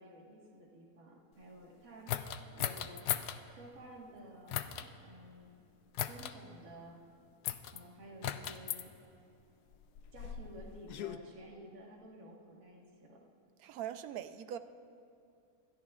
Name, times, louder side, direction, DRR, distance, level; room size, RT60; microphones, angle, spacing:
voice 1, 0.0-2.1 2.5-3.1 3.5-5.5 6.0-7.0 7.7-8.9 10.1-13.2, right 1 dB, 60° right, -3 dB, 2.0 m, -53 dB
sound 1, 2.1-3.4 4.5-4.9 5.9-6.3 7.4-7.8 8.2-8.8 9.7-11.2, left 10 dB, 80° left, 1.1 m, -37 dB
voice 2, 13.6-14.6, right 10 dB, 75° right, 11 dB, 1.0 m, -41 dB
26.5 x 13.5 x 2.4 m, 2.6 s
omnidirectional pair, 1.7 m